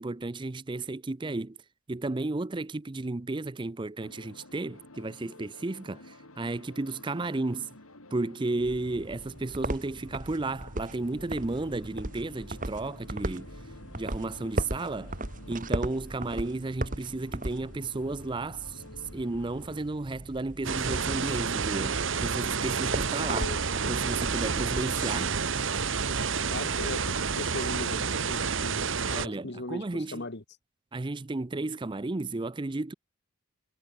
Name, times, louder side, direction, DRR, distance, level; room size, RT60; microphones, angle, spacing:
voice 1, 0.0-1.6 1.9-7.7 8.1-13.5 13.9-15.2 15.5-23.4 23.9-25.4 29.1-30.2 30.9-32.9, right 2 dB, 20° right, 0.5 m, -33 dB
sound 1, 4.0-19.8, left 2 dB, 75° left, 5.2 m, -52 dB
sound 2, 8.6-26.2, right 1 dB, 35° right, 2.4 m, -38 dB
sound 3, 20.6-29.3, right 5 dB, 60° right, 1.2 m, -29 dB
voice 2, 26.5-30.4, left 2 dB, 50° left, 1.6 m, -38 dB
head